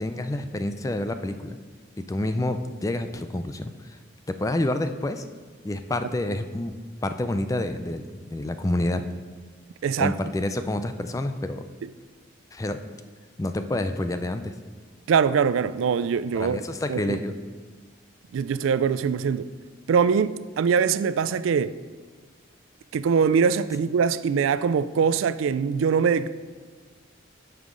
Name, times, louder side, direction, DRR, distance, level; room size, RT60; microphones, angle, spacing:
voice 1, 0.0-1.6 2.0-4.0 4.3-5.2 5.6-6.8 7.0-9.0 10.0-11.6 12.5-12.8 13.4-14.5 16.3-17.4, left 1 dB, 15° left, 0.3 m, -28 dB
voice 2, 9.8-10.1 15.1-16.6 16.9-17.2 18.3-19.5 19.9-21.7 22.9-26.3, right 6 dB, 85° right, 0.3 m, -22 dB
11.0 x 5.6 x 3.8 m
head